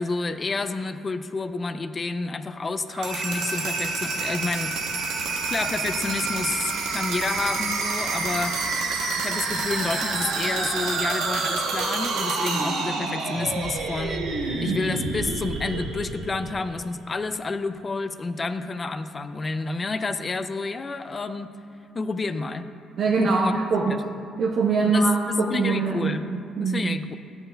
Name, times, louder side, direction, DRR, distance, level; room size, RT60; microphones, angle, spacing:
voice 1, 0.0-4.7 5.5-8.5 9.2-21.5 21.9-22.7 23.2-23.5 23.9-24.0 24.8-26.3 26.6-27.2, left 3 dB, 25° left, 10 dB, 0.3 m, -29 dB
sound 1, 2.9-16.7, right 3 dB, 90° right, 0.9 m, -28 dB
voice 2, 23.0-23.9 24.4-27.0, right 4 dB, 55° right, -1 dB, 0.7 m, -23 dB
12.0 x 8.8 x 2.2 m, 2.5 s
cardioid pair, 115°, 0 cm